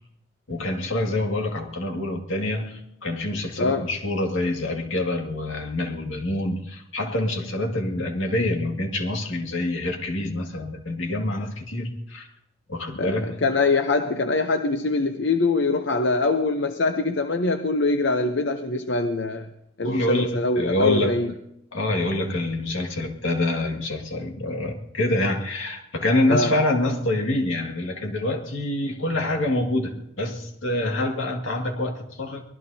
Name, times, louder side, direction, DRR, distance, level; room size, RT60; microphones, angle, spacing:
voice 1, 0.5-12.3 12.7-13.4 19.8-21.2 21.7-32.4, left 1 dB, 80° left, 2 dB, 2.1 m, -26 dB
voice 2, 3.6-3.9 13.0-19.5 19.8-21.3 26.3-26.6, left 3 dB, 60° left, 7 dB, 0.8 m, -23 dB
24.0 x 19.0 x 2.8 m, 0.84 s
head